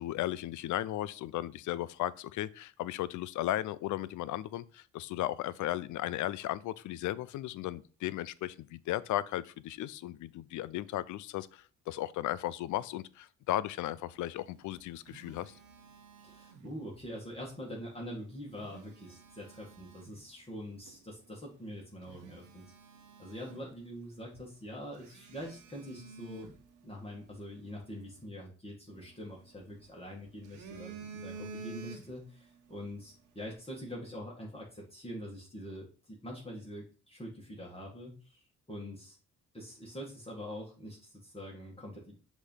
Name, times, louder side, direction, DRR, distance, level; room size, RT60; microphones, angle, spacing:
voice 1, 0.0-15.5, left 14 dB, 75° left, 0.5 m, -35 dB
Telephone, 14.5-17.1 18.3-20.2 20.9-21.0 21.6-21.7 22.0-24.1 24.3-24.5 25.0-27.4 28.9-29.9 30.3-32.4 32.7-32.9, right 5 dB, 90° right, 1.2 m, -50 dB
voice 2, 16.2-22.6 23.2-26.5 26.8-39.2 39.5-42.2, equal, 20° left, 2.0 m, -44 dB
6.5 x 3.2 x 5.6 m
cardioid pair, 90°, 30 cm